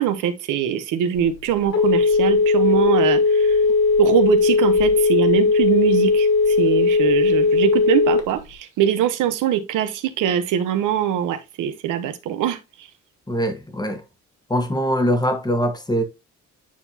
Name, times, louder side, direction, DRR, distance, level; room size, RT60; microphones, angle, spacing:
voice 1, 0.0-3.6 4.0-12.6, right 10 dB, 85° right, 1.0 m, -22 dB
Telephone, 1.2-8.5, left 4 dB, 55° left, 1.6 m, -18 dB
voice 2, 13.3-14.0 14.5-16.0, equal, 15° left, 1.2 m, -22 dB
8.7 x 4.5 x 2.8 m
cardioid pair, 90°, 30 cm